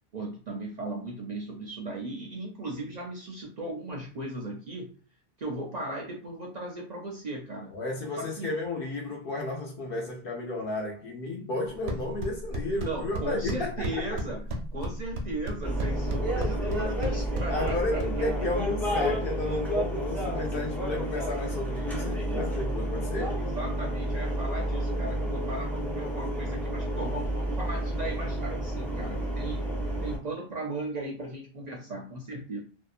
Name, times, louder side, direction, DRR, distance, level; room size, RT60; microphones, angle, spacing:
voice 1, 0.1-4.9 5.4-7.7 8.2-8.5 12.8-14.4 14.7-18.0 23.0-29.7 30.0-32.6, right 2 dB, 55° right, 0.5 m, -37 dB
voice 2, 7.7-14.2 17.5-23.3, left 2 dB, 70° left, 0.7 m, -33 dB
sound 1, 11.7-18.7, right 1 dB, 90° right, 0.8 m, -35 dB
sound 2, 15.6-30.2, right 1 dB, ahead, 0.6 m, -30 dB
2.7 x 2.0 x 2.4 m
omnidirectional pair, 1.0 m